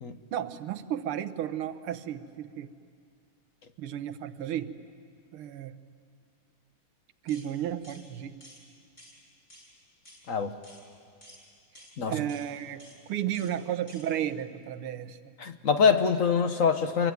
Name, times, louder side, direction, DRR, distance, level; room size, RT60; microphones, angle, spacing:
voice 1, 0.3-2.7 3.8-4.8 5.3-5.8 7.2-8.4 12.1-15.2, right 10 dB, 85° right, 10 dB, 1.8 m, -33 dB
sound 1, 7.3-7.5 7.8-8.0 8.4-8.6 9.0-9.2 9.5-9.7 10.0-10.2 10.6-10.8 11.2-11.4 11.7-11.9 12.3-12.5 12.8-13.0 13.3-13.5 13.9-14.0, equal, 20° left, 6.5 m, -52 dB
voice 2, 15.4-17.1, left 6 dB, 45° left, 8 dB, 1.2 m, -24 dB
28.0 x 23.0 x 9.4 m, 2.3 s
omnidirectional pair, 2.3 m